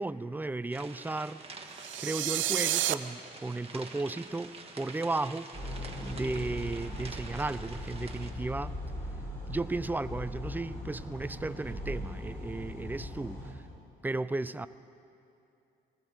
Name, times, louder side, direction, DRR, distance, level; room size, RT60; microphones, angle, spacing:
voice 1, 0.0-1.4 2.0-5.5 6.0-8.8 9.5-13.5 14.0-14.7, right 2 dB, 10° right, 14 dB, 0.4 m, -34 dB
sound 1, 0.7-8.3, right 3 dB, 30° right, 1.5 m, -47 dB
sound 2, 1.8-2.9, right 13 dB, 75° right, 0.5 m, -29 dB
sound 3, 5.5-13.5, left 1 dB, 10° left, 4.6 m, -39 dB
20.0 x 16.0 x 3.8 m, 2.7 s
cardioid pair, 90°, 20 cm